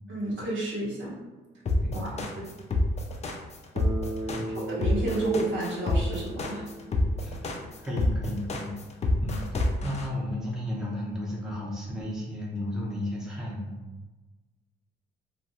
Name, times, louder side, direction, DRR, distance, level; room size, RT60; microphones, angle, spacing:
voice 1, 0.1-1.2 1.9-2.5 4.5-6.7, right 2 dB, 70° right, -5 dB, 1.0 m, -31 dB
sound 1, 1.7-10.0, left 2 dB, 35° left, 0.4 m, -27 dB
voice 2, 1.8-2.3 4.3-4.6 7.2-8.8 9.2-13.7, left 1 dB, 5° right, -5 dB, 0.7 m, -34 dB
Bass guitar, 3.8-8.0, right 1 dB, 50° right, 0.6 m, -38 dB
2.4 x 2.1 x 2.8 m, 1.2 s
cardioid pair, 90°, 20 cm